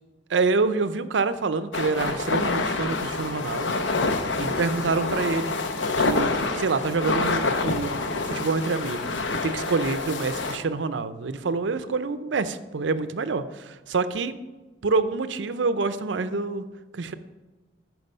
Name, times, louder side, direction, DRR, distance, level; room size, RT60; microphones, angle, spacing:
voice 1, 0.3-3.7 4.3-5.6 6.0-14.4 14.8-16.6 16.9-17.1, right 4 dB, 85° right, 12 dB, 0.5 m, -27 dB
sound 1, 1.7-10.6, left 3 dB, 85° left, 0.8 m, -27 dB
13.5 x 4.7 x 5.4 m, 1.2 s
head